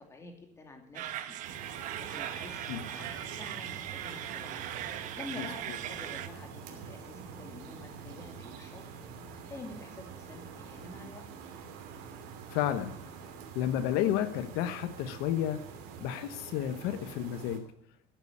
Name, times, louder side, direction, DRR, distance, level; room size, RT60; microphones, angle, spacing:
voice 1, 0.0-1.4 2.0-4.6 5.2-8.9 9.4-11.3, left 2 dB, 15° left, 4 dB, 2.5 m, -48 dB
sound 1, 0.9-6.3, right 11 dB, 50° right, 1.2 m, -39 dB
sound 2, 1.4-17.6, right 6 dB, 75° right, 3.1 m, -46 dB
voice 2, 12.5-13.0 13.5-15.6 16.0-17.6, left 11 dB, 75° left, 11 dB, 1.0 m, -31 dB
14.0 x 9.0 x 8.5 m, 0.67 s
cardioid pair, 175°, 17 cm